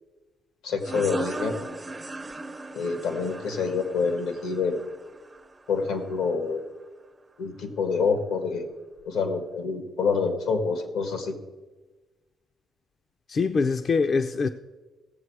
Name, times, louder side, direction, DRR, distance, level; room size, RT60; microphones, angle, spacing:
voice 1, 0.6-1.7 2.7-4.8 5.7-6.6 7.4-8.7 9.0-11.4, left 5 dB, 90° left, 1.7 m, -27 dB
sound 1, 0.8-6.2, right 2 dB, 20° right, 0.5 m, -38 dB
voice 2, 13.3-14.5, left 4 dB, 45° left, 0.5 m, -23 dB
16.0 x 7.4 x 4.7 m
cardioid pair, 90°, 0 cm